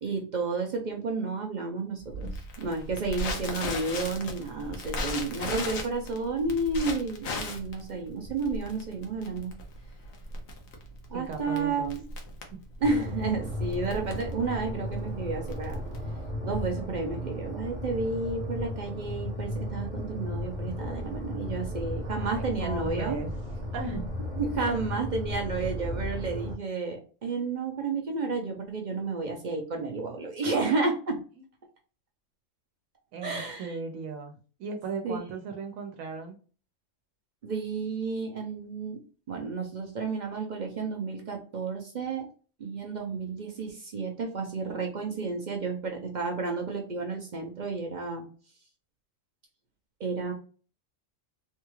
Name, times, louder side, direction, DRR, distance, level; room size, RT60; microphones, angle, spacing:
voice 1, 0.0-2.3 2.6-9.5 11.1-12.0 12.8-15.8 16.4-23.2 24.4-31.2 33.2-33.8 35.0-35.2 37.4-39.0 39.3-42.3 42.6-48.3 50.0-50.3, right 3 dB, 50° right, 2 dB, 0.5 m, -31 dB
Crackle, 2.1-16.3, left 2 dB, 85° left, 1.2 m, -37 dB
voice 2, 11.1-11.9 12.5-12.6 22.0-23.3 23.7-24.1 24.6-24.7 33.1-34.3 34.6-36.4, right 4 dB, 85° right, 3 dB, 1.0 m, -37 dB
sound 1, 12.8-26.5, left 1 dB, 65° left, 1.6 m, -35 dB
3.5 x 2.3 x 3.0 m, 0.39 s
omnidirectional pair, 1.4 m